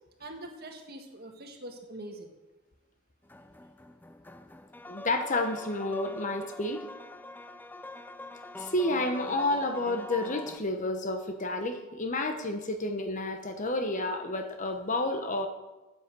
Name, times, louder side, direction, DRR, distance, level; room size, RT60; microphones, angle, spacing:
voice 1, 0.2-2.3, right 1 dB, 50° right, 4 dB, 1.7 m, -43 dB
sound 1, 3.2-10.6, left 1 dB, 10° left, 0.4 m, -43 dB
voice 2, 4.9-6.8 8.6-15.5, left 2 dB, 35° left, 7 dB, 1.1 m, -30 dB
10.0 x 8.4 x 7.6 m, 1.1 s
head